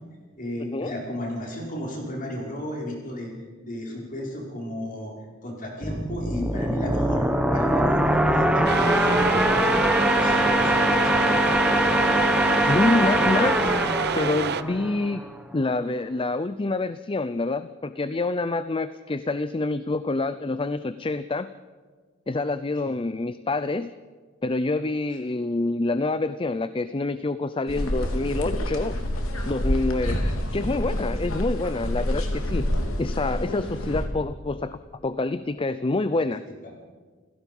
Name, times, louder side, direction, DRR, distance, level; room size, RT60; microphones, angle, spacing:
voice 1, 0.4-3.3 3.6-5.1 5.4-7.3 7.5-9.8 10.1-11.4 22.8-23.0 36.2-36.3, left 1 dB, 40° left, -1 dB, 5.6 m, -34 dB
sound 1, 5.8-15.4, equal, 5° right, 1.2 m, -22 dB
sound 2, 8.7-14.6, right 6 dB, 55° right, 0.7 m, -28 dB
voice 2, 12.7-13.8 14.1-15.2 15.5-21.5 22.3-23.9 24.4-29.0 29.4-30.2 30.5-32.7 33.0-36.4, left 2 dB, 25° left, 13 dB, 0.5 m, -27 dB
sound 3, 27.7-34.1, equal, 85° left, 3.1 m, -27 dB
29.5 x 16.5 x 5.4 m, 1.5 s
head